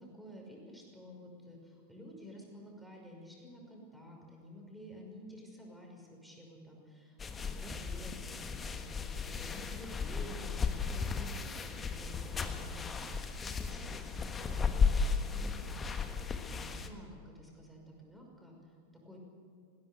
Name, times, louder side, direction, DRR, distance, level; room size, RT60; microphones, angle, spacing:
voice 1, 0.1-16.1 16.4-19.2, equal, ahead, -1 dB, 5.7 m, -51 dB
sound 1, 7.2-16.9, left 5 dB, 20° left, 1.5 m, -35 dB
19.0 x 17.5 x 8.2 m, 2.3 s
figure-of-eight pair, 90°, 0 cm